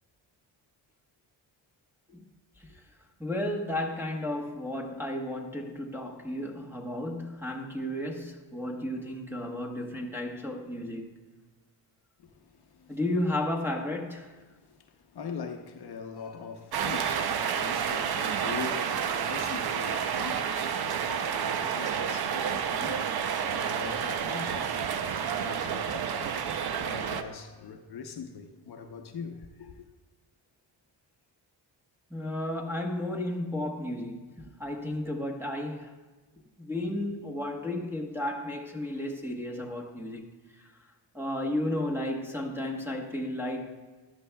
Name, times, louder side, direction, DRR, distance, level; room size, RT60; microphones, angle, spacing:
voice 1, 3.2-11.1 12.9-14.3 25.0-25.2 32.1-35.9 36.6-40.3 40.6-40.7 41.1-43.8, left 1 dB, 5° right, 1.1 m, -33 dB
voice 2, 12.2-13.0 14.5-26.4 26.8-29.9, left 5 dB, 55° left, 0.8 m, -42 dB
sound 1, 16.7-27.2, right 7 dB, 55° right, 0.7 m, -30 dB
14.0 x 11.5 x 2.3 m
cardioid pair, 125°, 47 cm